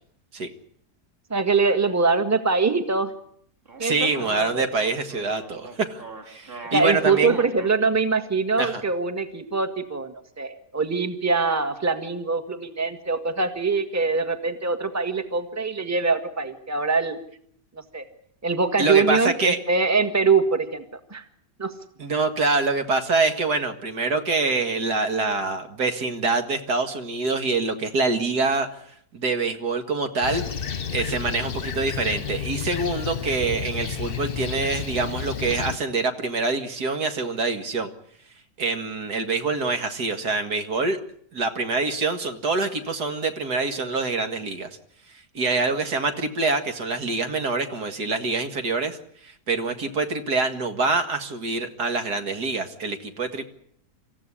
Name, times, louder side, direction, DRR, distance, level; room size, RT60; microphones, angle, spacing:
voice 1, 1.3-3.1 3.8-4.6 6.7-17.2 17.7-18.0 18.4-21.2 21.6-21.7, right 4 dB, 10° right, 9 dB, 1.5 m, -23 dB
sound 1, 3.7-7.7, right 3 dB, 35° right, 5.0 m, -40 dB
voice 2, 3.8-7.4 8.6-8.8 18.8-19.6 22.0-28.7 29.1-30.6 30.9-37.9 38.6-41.0 41.3-44.7 45.3-49.0 49.2-53.4, right 3 dB, 75° right, 7 dB, 2.5 m, -25 dB
Fixed-wing aircraft airplane, 30.2-35.8, left 7 dB, 40° left, 1.1 m, -31 dB
26.5 x 14.5 x 9.9 m, 0.66 s
omnidirectional pair, 1.7 m